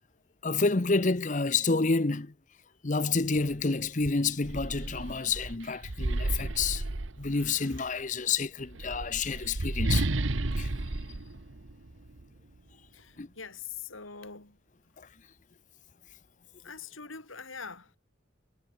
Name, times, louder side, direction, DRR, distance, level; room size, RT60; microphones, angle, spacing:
voice 1, 0.4-2.3 2.8-6.8 7.2-10.1 10.6-10.7 13.2-13.3, left 4 dB, 40° left, 0.9 m, -29 dB
sound 1, 3.5-3.6 4.0-7.7 8.6-12.2, right 2 dB, 75° right, 1.3 m, -32 dB
voice 2, 12.9-14.6 16.6-18.0, left 6 dB, 85° left, 4.5 m, -43 dB
head